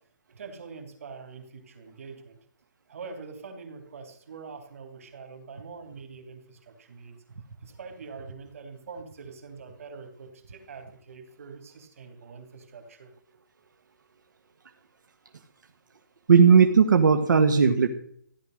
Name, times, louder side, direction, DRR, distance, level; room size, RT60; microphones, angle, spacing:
voice 1, 0.4-2.4 2.9-7.2 7.6-13.1, right 5 dB, 45° right, 6 dB, 3.0 m, -44 dB
voice 2, 16.3-17.9, right 6 dB, 65° right, 5 dB, 1.5 m, -17 dB
15.0 x 10.5 x 6.4 m, 0.65 s
hypercardioid pair, 180°, 11 cm